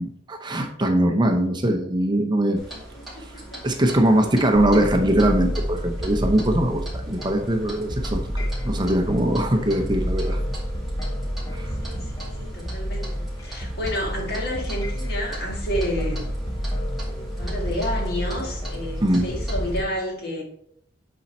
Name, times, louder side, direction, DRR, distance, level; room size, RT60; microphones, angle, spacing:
voice 1, 0.0-2.6 3.6-8.2 8.6-10.4 11.5-11.7 19.0-19.3, right 1 dB, 25° right, 4 dB, 0.7 m, -21 dB
Clock, 2.6-19.8, right 1 dB, ahead, 2.3 m, -42 dB
voice 2, 2.7-3.6 11.8-16.3 17.1-20.4, equal, 55° left, 0 dB, 1.8 m, -31 dB
sound 1, 4.6-19.8, equal, 20° left, 0.8 m, -29 dB
8.5 x 4.2 x 4.2 m, 0.69 s
head